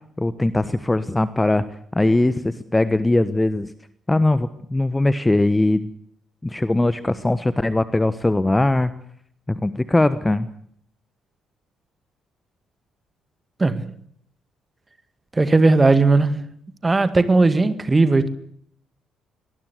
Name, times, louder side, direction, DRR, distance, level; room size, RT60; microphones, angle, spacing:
voice 1, 0.2-1.6 1.9-3.7 4.1-5.9 6.4-8.9 9.5-10.5, left 2 dB, 15° left, 1.2 m, -20 dB
voice 2, 13.6-13.9 15.3-16.4 16.8-18.3, right 3 dB, 20° right, 2.0 m, -17 dB
23.5 x 19.5 x 8.2 m
figure-of-eight pair, 45°, 0 cm